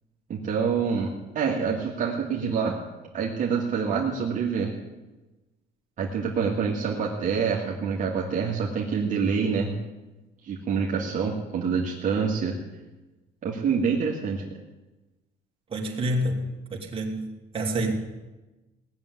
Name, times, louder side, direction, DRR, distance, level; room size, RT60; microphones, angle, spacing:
voice 1, 0.3-2.8 3.1-4.7 6.0-9.7 10.4-12.5 13.4-14.4, right 6 dB, 50° right, -3 dB, 2.1 m, -26 dB
voice 2, 15.7-17.3 17.5-17.9, right 1 dB, 35° right, 0 dB, 2.9 m, -28 dB
18.0 x 7.3 x 9.7 m, 1.1 s
cardioid pair, 110°, 17 cm